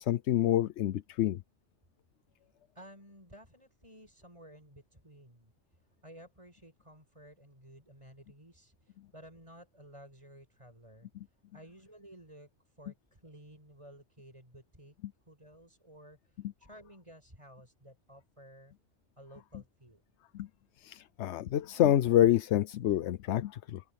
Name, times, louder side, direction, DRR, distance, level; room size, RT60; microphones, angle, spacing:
voice 1, 0.0-1.4 20.3-20.5 20.8-23.8, left 12 dB, 75° left, 0.9 m, -27 dB
voice 2, 2.7-14.9 15.3-18.7 19.2-20.0, equal, 25° right, 8.0 m, -55 dB
open air
omnidirectional pair, 1.2 m